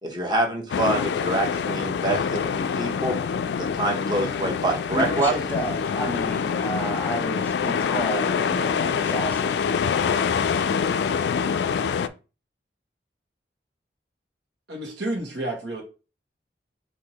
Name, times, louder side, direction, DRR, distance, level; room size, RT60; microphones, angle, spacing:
voice 1, 0.0-3.1 3.6-5.3, right 2 dB, 25° right, 1.0 m, -26 dB
sound 1, 0.7-12.1, left 6 dB, 75° left, 0.3 m, -25 dB
voice 2, 4.9-9.7, equal, 10° left, 1.0 m, -31 dB
voice 3, 14.7-15.8, right 1 dB, 80° right, 1.3 m, -30 dB
4.5 x 2.7 x 4.1 m
head